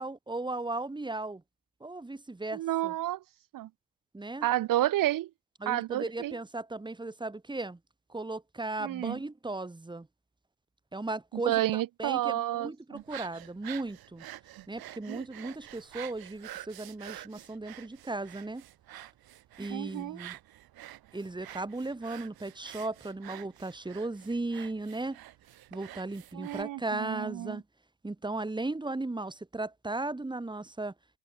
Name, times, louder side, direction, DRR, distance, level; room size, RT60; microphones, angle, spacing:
voice 1, 0.0-1.4 1.8-2.9 4.1-4.5 5.6-7.8 8.1-10.1 10.9-14.2 14.7-18.6 19.6-20.4 21.1-25.2 25.7-27.6 28.0-30.9, right 2 dB, 10° right, 5.2 m, -36 dB
voice 2, 2.5-3.2 3.5-3.7 4.4-5.3 5.7-6.3 8.8-9.2 11.3-13.0 19.7-20.2 26.3-27.6, right 14 dB, 60° right, 1.0 m, -30 dB
sound 1, 13.0-26.6, right 14 dB, 75° right, 4.0 m, -48 dB
cardioid pair, 130°, 37 cm